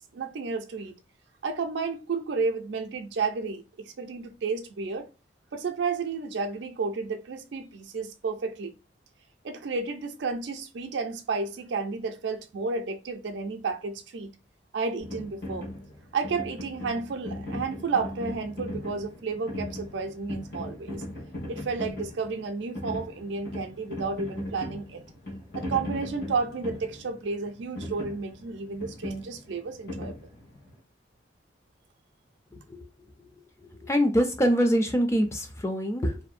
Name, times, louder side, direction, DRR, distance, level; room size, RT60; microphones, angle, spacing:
voice 1, 0.1-1.0 1.4-5.1 5.5-8.7 9.4-14.3 14.7-15.7 16.1-21.0 21.5-25.0 25.5-30.1, right 4 dB, 75° right, 0.4 m, -32 dB
sound 1, 15.0-30.7, left 1 dB, 55° left, 1.0 m, -38 dB
voice 2, 33.8-36.2, equal, 15° left, 0.3 m, -24 dB
2.6 x 2.0 x 2.4 m
head